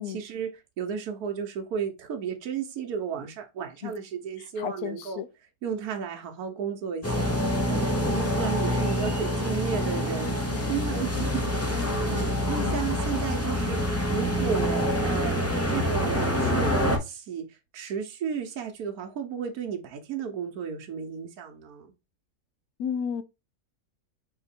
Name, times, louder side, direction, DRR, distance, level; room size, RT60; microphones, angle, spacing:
voice 1, 0.1-5.2 5.6-21.9, right 7 dB, 75° right, 1.3 m, -34 dB
voice 2, 4.6-5.3 10.5-10.7 11.7-12.0 12.6-12.8 22.8-23.2, left 8 dB, 80° left, 1.1 m, -33 dB
sound 1, 7.0-17.0, equal, 15° left, 0.5 m, -26 dB
4.4 x 2.9 x 4.1 m
omnidirectional pair, 1.6 m